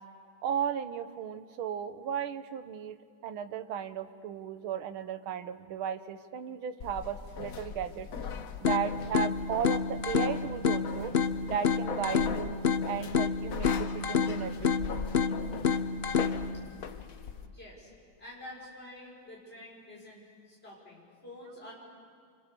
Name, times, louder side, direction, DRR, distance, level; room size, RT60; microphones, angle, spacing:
voice 1, 0.4-3.0 3.2-8.1 8.6-11.1 11.5-12.6 12.8-14.9, right 8 dB, 85° right, 11 dB, 1.8 m, -35 dB
sound 1, 6.8-17.5, left 6 dB, 50° left, 1.3 m, -40 dB
sound 2, 8.6-16.6, left 6 dB, 65° left, 0.6 m, -29 dB
voice 2, 17.5-17.9 18.2-21.7, left 1 dB, 25° left, -4 dB, 5.8 m, -48 dB
29.5 x 25.5 x 6.9 m, 2.2 s
omnidirectional pair, 2.2 m